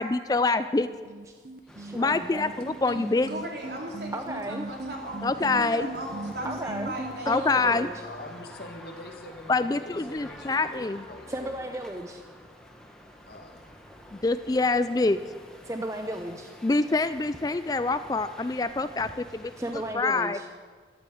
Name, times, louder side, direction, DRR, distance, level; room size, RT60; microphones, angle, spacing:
voice 1, 0.0-0.9 2.0-2.5 2.8-3.3 5.2-5.9 7.3-7.9 9.5-11.0 14.1-15.2 16.6-19.5 19.9-20.4, left 3 dB, 20° left, 12 dB, 0.3 m, -25 dB
sound 1, 0.8-7.1, right 2 dB, 50° right, 0.9 m, -38 dB
sound 2, 1.7-19.9, equal, 5° left, 1.4 m, -48 dB
voice 2, 1.8-2.4 4.1-4.7 6.4-6.9 7.3-7.9 11.3-12.2 15.6-16.5 19.6-20.5, right 1 dB, 15° right, 5 dB, 0.7 m, -34 dB
voice 3, 3.3-7.7, right 1 dB, 75° right, -1 dB, 3.5 m, -37 dB
voice 4, 8.0-11.5 13.3-13.6, left 1 dB, 60° left, 3 dB, 2.0 m, -44 dB
13.0 x 13.0 x 7.8 m, 1.6 s
head